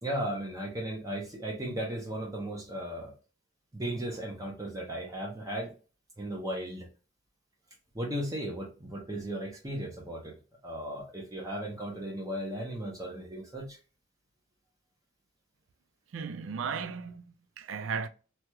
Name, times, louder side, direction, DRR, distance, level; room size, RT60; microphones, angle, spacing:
voice 1, 0.0-3.1 3.7-5.7 6.2-6.9 7.9-10.4 10.6-13.8, right 1 dB, 20° right, 0.6 m, -36 dB
voice 2, 16.1-18.1, right 6 dB, 70° right, 0.4 m, -36 dB
2.9 x 2.3 x 2.9 m
head